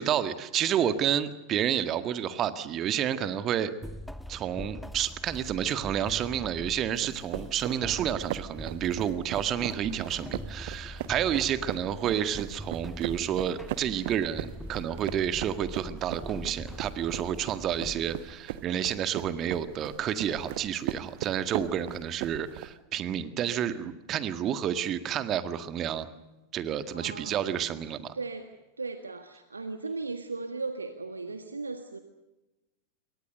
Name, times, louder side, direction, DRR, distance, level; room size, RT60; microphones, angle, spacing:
voice 1, 0.0-3.7 4.3-26.1 26.5-28.2, right 9 dB, 30° right, 11 dB, 1.8 m, -30 dB
sound 1, 3.8-18.3, equal, ahead, 1.3 m, -43 dB
sound 2, 7.0-22.7, right 13 dB, 50° right, 1.3 m, -39 dB
voice 2, 26.9-27.5 28.1-28.5 28.8-32.0, right 3 dB, 80° right, 8 dB, 1.6 m, -37 dB
28.0 x 23.5 x 6.7 m, 1.0 s
figure-of-eight pair, 90°, 0 cm